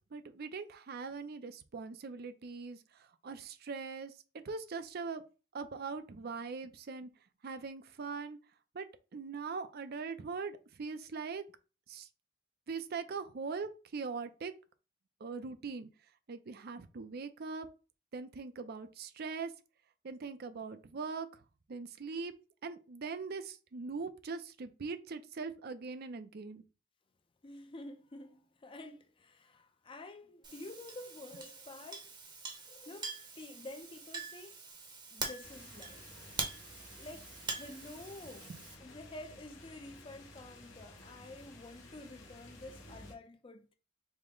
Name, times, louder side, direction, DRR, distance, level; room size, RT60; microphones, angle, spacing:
voice 1, 0.1-5.2 5.5-7.1 7.4-8.4 8.7-8.9 9.1-11.4 11.9-12.1 12.7-14.5 15.2-15.9 16.3-17.7 18.1-19.5 20.0-21.4 21.7-22.3 22.6-26.6 38.5-38.6, right 4 dB, 55° right, 0.5 m, -41 dB
voice 2, 27.4-32.1 32.7-34.7 35.1-36.5 36.9-38.5 38.8-43.7, left 2 dB, 25° left, 0.5 m, -50 dB
Chink clink, 30.4-38.7, right 4 dB, 25° right, 0.8 m, -44 dB
sound 1, 35.4-43.2, left 2 dB, 80° left, 1.2 m, -54 dB
5.0 x 2.1 x 3.7 m
head